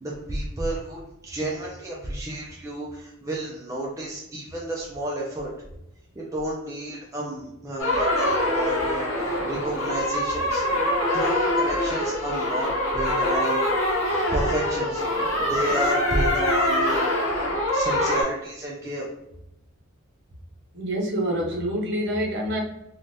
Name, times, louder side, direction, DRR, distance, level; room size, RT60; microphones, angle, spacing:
voice 1, 0.0-5.5 6.2-9.1 9.4-10.6 11.1-13.7 14.3-15.0 15.4-17.1 17.7-19.1, right 1 dB, 15° right, -4 dB, 0.4 m, -31 dB
sound 1, 7.8-18.2, left 1 dB, 60° left, 1.0 m, -24 dB
voice 2, 20.7-22.6, equal, 50° right, -1 dB, 0.7 m, -26 dB
3.2 x 2.4 x 2.7 m, 0.85 s
head